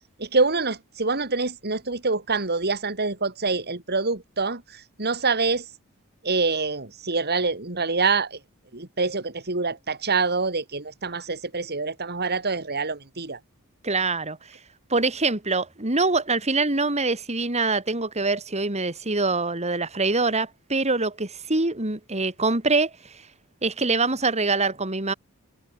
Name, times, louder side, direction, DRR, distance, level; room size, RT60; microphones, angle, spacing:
voice 1, 0.2-5.7 6.2-8.4 8.7-13.4, right 4 dB, 50° right, 3.6 m, -26 dB
voice 2, 13.8-14.4 14.9-22.9 23.6-25.1, right 3 dB, 30° right, 3.3 m, -24 dB
head